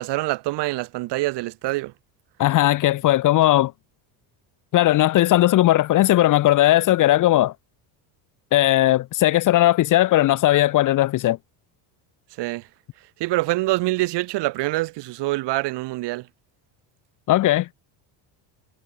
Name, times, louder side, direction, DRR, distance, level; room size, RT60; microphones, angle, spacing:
voice 1, 0.0-1.9 12.4-12.6 13.2-16.3, right 19 dB, 55° right, 6.2 m, -25 dB
voice 2, 2.4-3.7 4.7-7.5 8.5-11.4 17.3-17.7, left 15 dB, 40° left, 1.2 m, -18 dB
cardioid pair, 170°, 48 cm